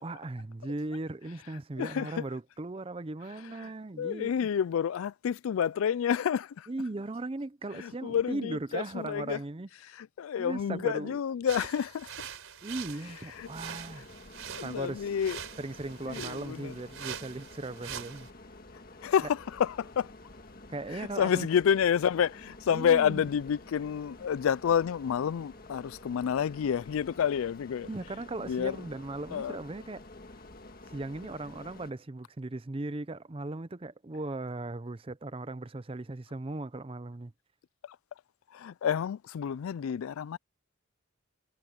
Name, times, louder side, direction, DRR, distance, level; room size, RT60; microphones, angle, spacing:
voice 1, 0.0-4.3 6.7-9.7 10.4-11.2 12.6-14.1 14.6-15.1 15.6-18.3 20.7-21.5 22.7-23.2 27.8-30.0 30.9-37.3, right 2 dB, 25° right, 0.5 m, -38 dB
voice 2, 1.8-2.2 3.6-3.7 4.0-6.7 7.7-9.4 9.9-12.1 13.3-13.5 14.6-15.4 16.1-16.8 19.0-20.1 20.9-27.9 28.4-28.8 29.3-29.6 37.8-38.0 38.5-40.4, left 8 dB, 85° left, 0.3 m, -29 dB
sound 1, 11.5-18.3, right 8 dB, 85° right, 4.1 m, -44 dB
sound 2, 13.3-31.9, left 2 dB, 45° left, 1.8 m, -50 dB
head